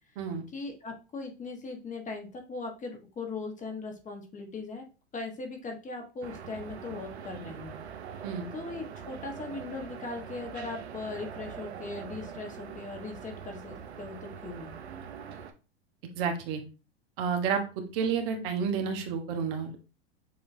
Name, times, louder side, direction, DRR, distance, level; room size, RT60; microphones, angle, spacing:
voice 1, 0.5-4.8 5.1-7.8 8.5-14.8, left 3 dB, 25° left, 3 dB, 1.3 m, -39 dB
sound 1, 6.2-15.5, right 7 dB, 90° right, 0.7 m, -43 dB
voice 2, 16.2-16.6 17.2-17.6 17.9-19.8, right 6 dB, 55° right, 4 dB, 1.1 m, -30 dB
7.0 x 2.9 x 2.7 m, 0.33 s
hypercardioid pair, 100°, 31 cm